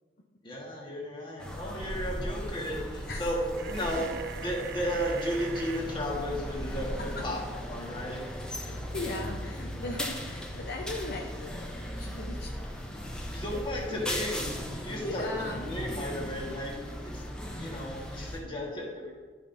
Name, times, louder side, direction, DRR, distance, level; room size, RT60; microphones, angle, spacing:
voice 1, 0.4-4.1 4.4-7.4 7.7-8.2 13.3-15.3 15.7-16.7 17.1-17.3 17.6-19.1, equal, 30° left, -2 dB, 1.5 m, -34 dB
sound 1, 1.4-18.4, equal, 5° left, 0.7 m, -37 dB
sound 2, 3.5-5.8, right 8 dB, 60° right, 0.3 m, -40 dB
voice 2, 8.6-12.5 15.0-15.7 18.2-18.3, left 2 dB, 60° left, -1 dB, 0.7 m, -38 dB
11.0 x 5.2 x 2.7 m, 1.5 s
head